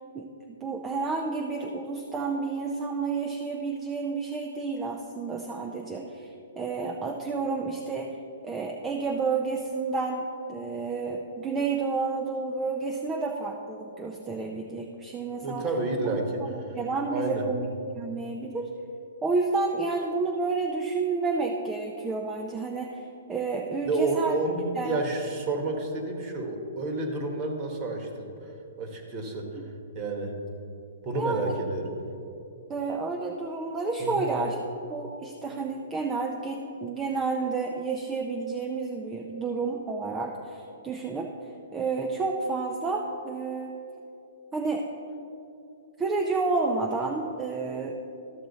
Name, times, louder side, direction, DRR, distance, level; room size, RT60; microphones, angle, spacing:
voice 1, 0.1-8.2 8.4-15.6 16.0-16.2 16.5-17.7 17.9-18.7 19.2-24.4 24.8-25.0 31.1-31.5 32.7-34.6 34.9-41.3 41.7-43.7 44.5-44.9 46.0-48.0, right 4 dB, 15° right, 2 dB, 0.5 m, -30 dB
voice 2, 15.4-16.4 17.1-17.4 23.9-28.5 28.8-29.6 29.9-30.3 31.0-31.9 34.0-34.3, right 2 dB, 30° right, 3 dB, 1.3 m, -30 dB
13.0 x 6.1 x 4.0 m, 2.7 s
hypercardioid pair, 150°, 0 cm